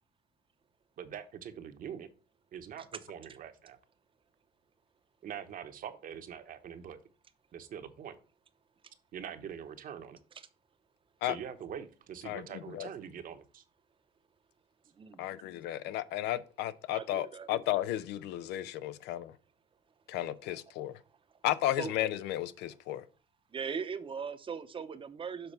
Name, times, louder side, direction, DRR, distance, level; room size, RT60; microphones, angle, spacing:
voice 1, 1.0-2.1 2.5-3.8 5.2-7.0 7.5-8.2 9.1-10.2 11.2-13.6, right 8 dB, 55° right, 1.0 m, -43 dB
voice 2, 12.2-12.9 15.2-19.3 20.1-21.0 21.4-23.0, left 13 dB, 90° left, 0.6 m, -34 dB
voice 3, 16.9-17.5 21.8-21.9 23.5-25.5, right 6 dB, 30° right, 0.8 m, -39 dB
6.8 x 4.0 x 5.4 m
cardioid pair, 110°, 17 cm